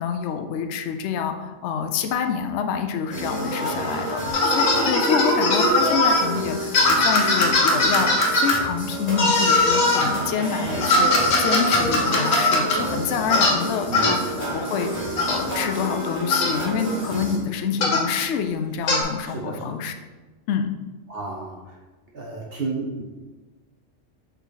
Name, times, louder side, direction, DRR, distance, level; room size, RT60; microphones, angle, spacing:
voice 1, 0.0-19.9 20.5-20.7, left 6 dB, 65° left, 6 dB, 0.8 m, -27 dB
sound 1, 3.1-17.4, right 1 dB, 30° left, 1.5 m, -29 dB
sound 2, 4.3-6.2 6.7-8.6 9.2-10.1 10.8-12.8 13.3-13.6 13.9-14.2 15.2-15.4 16.3-16.5 17.8-18.1 18.9-19.0, left 2 dB, 85° left, 1.4 m, -20 dB
voice 2, 19.3-19.6 21.1-21.8 22.1-23.0, right 3 dB, 50° right, -2 dB, 1.0 m, -32 dB
6.1 x 4.1 x 3.9 m, 1.2 s
omnidirectional pair, 1.4 m